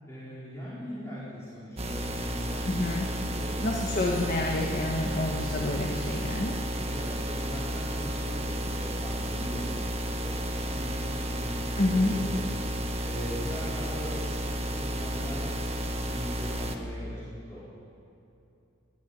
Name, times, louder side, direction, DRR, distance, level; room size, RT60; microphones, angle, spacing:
voice 1, 0.1-4.0 6.8-12.6 13.0-17.7, equal, 15° left, -10 dB, 4.6 m, -40 dB
sound 1, 1.8-16.8, equal, 30° right, 1.5 m, -32 dB
voice 2, 2.7-3.0 3.6-6.6 11.8-12.1, left 2 dB, 45° left, 0 dB, 1.6 m, -28 dB
20.0 x 13.5 x 10.0 m, 2.8 s
head